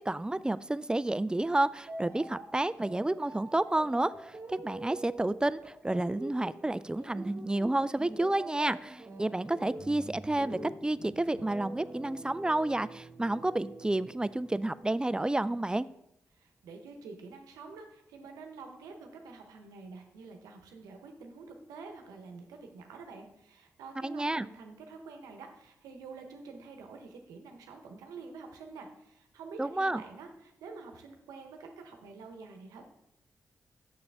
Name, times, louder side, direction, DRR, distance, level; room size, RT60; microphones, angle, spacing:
voice 1, 0.1-15.9 24.0-24.5 29.6-30.0, right 2 dB, 15° right, 17 dB, 0.3 m, -30 dB
sound 1, 1.9-14.8, right 2 dB, 45° right, 1.2 m, -46 dB
voice 2, 16.3-32.9, right 4 dB, 90° right, 4 dB, 0.9 m, -48 dB
6.9 x 6.5 x 3.4 m, 0.82 s
supercardioid pair, 45°, 6 cm